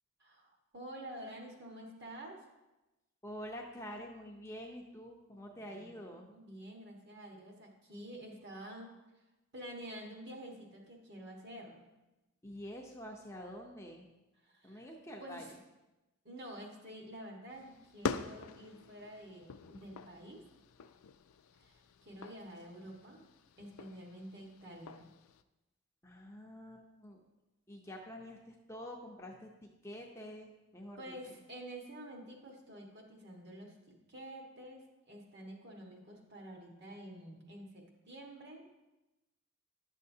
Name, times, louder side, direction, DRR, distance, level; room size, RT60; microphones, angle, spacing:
voice 1, 0.2-2.4 5.6-8.9 9.5-11.8 14.4-14.9 15.2-15.5 16.2-20.4 21.6-23.2 23.6-25.1 31.0-38.7, right 1 dB, 50° right, 0 dB, 1.4 m, -49 dB
voice 2, 3.2-6.3 12.4-14.1 14.6-15.5 26.0-27.2 27.7-31.2, equal, 15° left, 0 dB, 0.6 m, -47 dB
sound 1, 17.5-25.4, left 5 dB, 85° left, 0.4 m, -45 dB
10.0 x 6.6 x 2.7 m, 1.0 s
head